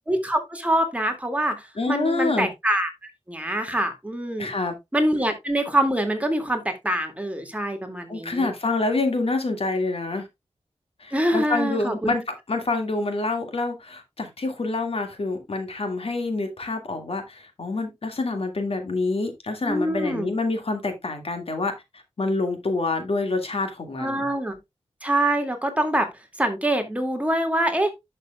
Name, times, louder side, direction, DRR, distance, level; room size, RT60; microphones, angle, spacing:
voice 1, 0.1-4.5 4.9-8.5 11.1-12.1 19.6-20.3 24.0-24.6 25.0-26.1 26.4-27.9, right 1 dB, 10° right, 2.1 m, -25 dB
voice 2, 1.8-2.5 4.4-4.7 8.1-10.3 11.0-21.7 22.2-24.3, left 3 dB, 60° left, 2.0 m, -27 dB
11.5 x 6.6 x 2.3 m
wide cardioid pair, 90°, 11 cm